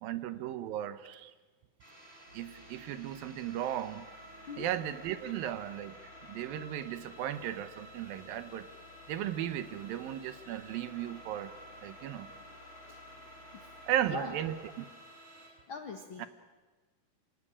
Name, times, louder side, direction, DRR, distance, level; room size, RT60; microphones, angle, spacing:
voice 1, 0.0-1.3 2.3-4.1 4.6-6.0 6.3-8.7 9.1-11.5 11.8-12.4 13.9-14.6 16.2-16.3, right 11 dB, 75° right, 12 dB, 2.6 m, -36 dB
sound 1, 1.8-15.5, equal, 15° right, 7.7 m, -52 dB
sound 2, 2.3-14.7, left 2 dB, 40° right, 6.5 m, -59 dB
voice 2, 14.1-14.4 15.7-16.3, left 4 dB, 70° left, 5 dB, 1.2 m, -42 dB
27.0 x 17.5 x 10.0 m, 1.3 s
omnidirectional pair, 4.4 m